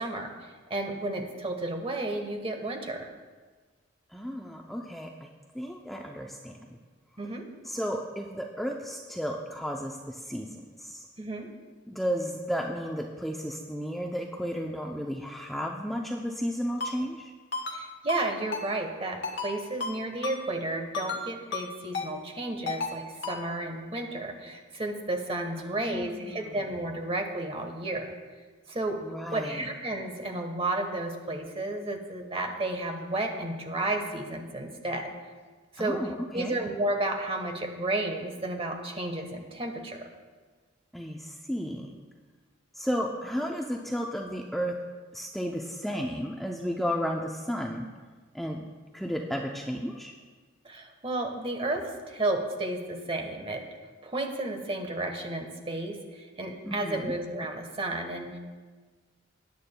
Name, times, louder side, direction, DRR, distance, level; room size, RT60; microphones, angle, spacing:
voice 1, 0.0-3.1 7.2-7.5 11.2-11.5 17.7-28.1 28.7-29.0 29.3-35.1 35.7-36.0 36.3-40.1 50.6-53.6 54.0-58.4, right 2 dB, 30° right, 4 dB, 1.2 m, -32 dB
voice 2, 4.1-6.8 7.6-11.1 11.9-17.3 25.6-26.6 29.0-29.7 35.8-36.5 40.9-41.9 42.7-44.7 45.1-47.9 48.3-48.7 48.9-50.1 56.6-57.1, equal, ahead, 0 dB, 0.5 m, -33 dB
Ringtone, 16.8-16.9 17.5-17.8 18.1-18.2 18.5-18.7 19.2-19.5 19.8-19.9 20.2-20.4 20.9-21.2 21.5-21.6 21.9-22.1 22.7-22.9 23.2-23.4, left 4 dB, 60° left, 1.4 m, -32 dB
19.5 x 9.4 x 2.2 m, 1.4 s
head